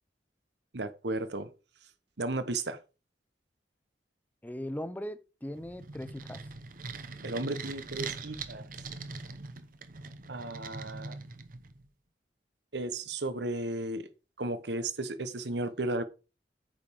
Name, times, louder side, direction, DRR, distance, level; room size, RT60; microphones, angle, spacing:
voice 1, 0.7-1.5 2.2-2.8 7.2-8.7 10.3-11.2 12.7-14.1 14.4-16.0, right 2 dB, 75° right, 1.1 m, -34 dB
voice 2, 4.4-6.4, equal, 10° left, 0.6 m, -39 dB
sound 1, 5.5-11.9, right 4 dB, 50° right, 0.9 m, -42 dB
8.9 x 5.6 x 4.7 m
head